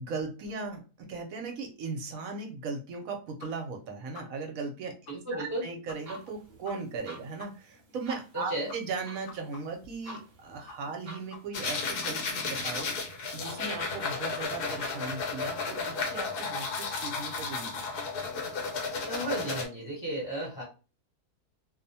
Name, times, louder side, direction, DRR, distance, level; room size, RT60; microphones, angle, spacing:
voice 1, 0.0-4.9 5.3-12.9 13.3-17.8, right 4 dB, 70° right, 3 dB, 0.9 m, -38 dB
sound 1, 3.4-3.5 3.8-3.9 4.1-4.2 4.6-4.7 5.1-5.2 5.4-5.5 5.9-6.0 6.3-6.4 6.6-6.7 7.0-7.1 7.4-7.5 7.8-8.4 8.7-10.4 10.7-11.0 11.3-11.7 12.0-12.1 12.4-12.5 12.8-12.9, left 5 dB, 60° left, 0.9 m, -47 dB
voice 2, 5.1-5.6 8.3-8.7 19.0-20.6, right 1 dB, 20° left, -4 dB, 0.8 m, -34 dB
sound 2, 5.9-11.5, equal, 50° right, 0.6 m, -51 dB
sound 3, 11.5-19.7, left 4 dB, 80° left, 1.3 m, -33 dB
2.7 x 2.0 x 2.6 m, 0.33 s
omnidirectional pair, 1.7 m